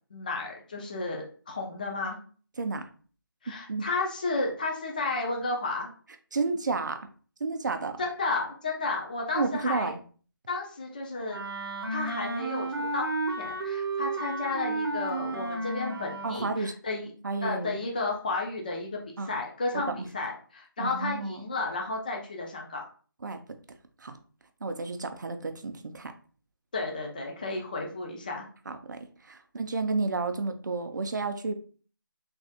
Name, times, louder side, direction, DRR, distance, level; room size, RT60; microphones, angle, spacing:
voice 1, 0.1-2.2 3.4-5.9 8.0-9.9 10.5-11.4 11.9-13.0 13.4-17.1 17.4-22.8 26.7-28.5, left 3 dB, 20° left, 0 dB, 0.4 m, -32 dB
voice 2, 6.3-7.0 7.4-8.0 9.3-10.0 16.2-16.7 17.2-17.8 19.2-19.3 19.7-19.8 20.8-21.4 23.2-23.4 24.0-24.2 24.6-26.1 28.7-31.5, right 3 dB, 55° right, 8 dB, 0.4 m, -31 dB
Wind instrument woodwind instrument, 11.3-16.5, right 2 dB, 85° right, 0.7 m, -32 dB
3.3 x 2.3 x 2.7 m, 0.41 s
figure-of-eight pair, 165°, 12 cm